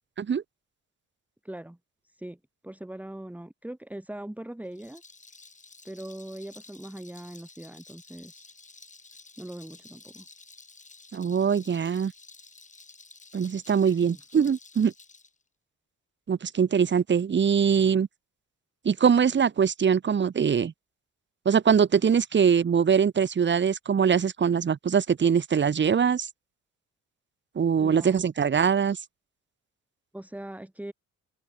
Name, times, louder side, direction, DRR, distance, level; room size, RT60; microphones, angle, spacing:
voice 1, 1.4-1.8 2.0-5.0 5.8-8.5 9.4-10.3 13.9-14.2 27.8-28.2 30.1-30.9, right 1 dB, 5° right, 2.3 m, -41 dB
Rattle, 4.7-15.3, left 3 dB, 25° left, 5.0 m, -52 dB
voice 2, 11.1-12.1 13.3-14.9 16.3-18.1 18.8-20.7 21.4-26.3 27.5-29.0, right 7 dB, 40° right, 1.3 m, -22 dB
open air
cardioid pair, 90°, 30 cm